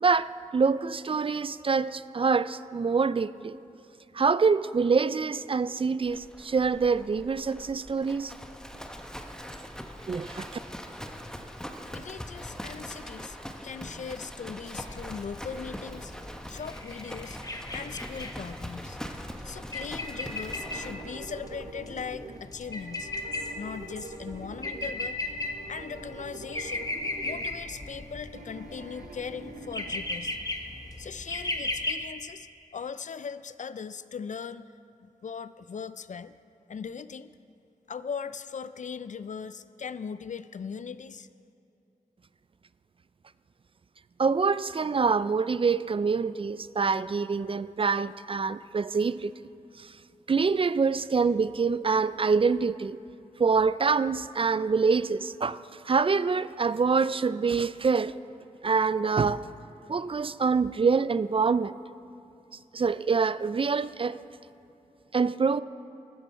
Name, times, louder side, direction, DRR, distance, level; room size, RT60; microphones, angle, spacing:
voice 1, 0.0-3.6 4.1-8.3 10.1-10.5 44.2-49.3 49.8-49.9 50.3-53.0 53.4-55.6 55.9-58.1 58.6-59.5 59.9-61.8 62.7-64.2 65.1-65.6, right 5 dB, 40° right, 0.4 m, -25 dB
Livestock farm animals working animals, 6.1-21.6, equal, 5° left, 1.2 m, -42 dB
voice 2, 11.9-13.4 13.6-16.1 16.5-17.4 17.7-19.0 19.4-23.1 23.6-25.2 25.7-26.9 27.2-30.4 31.0-32.5 32.7-34.7 35.0-36.4 36.7-37.3 37.9-41.3, left 6 dB, 60° left, 0.4 m, -39 dB
sound 1, 14.9-31.9, left 2 dB, 25° left, 1.2 m, -37 dB
sound 2, 20.1-30.0, right 2 dB, 90° right, 1.0 m, -45 dB
14.5 x 13.5 x 4.5 m
cardioid pair, 50°, 14 cm